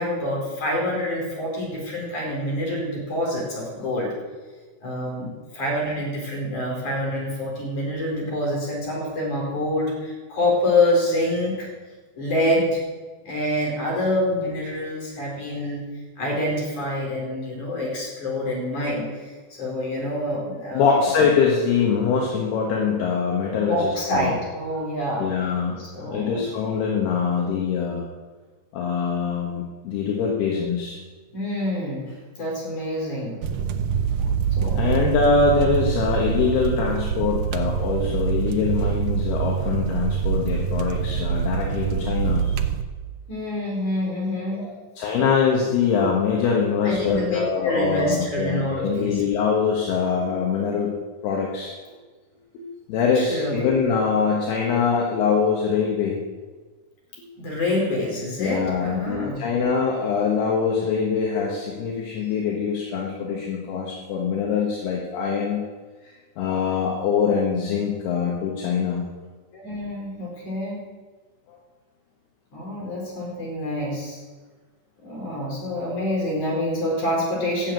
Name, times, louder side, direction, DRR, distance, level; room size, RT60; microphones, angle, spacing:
voice 1, 0.0-4.1 4.8-11.7 12.2-12.8 13.2-15.9 16.2-21.1 23.6-25.3 25.8-26.5 31.3-33.4 34.5-34.8 43.3-44.7 46.8-49.2 53.2-53.6 57.4-59.4 69.5-70.9 72.5-74.2 75.0-77.7, left 1 dB, 45° left, -3 dB, 5.8 m, -26 dB
voice 2, 20.8-24.3 25.2-28.0 28.7-31.0 34.8-42.5 44.6-50.9 51.2-51.7 52.6-56.2 58.4-65.6 66.4-69.1, left 5 dB, 75° left, -2 dB, 3.4 m, -23 dB
sound 1, 33.4-42.8, right 7 dB, 75° right, 1.9 m, -25 dB
14.0 x 7.3 x 9.0 m, 1.4 s
omnidirectional pair, 4.7 m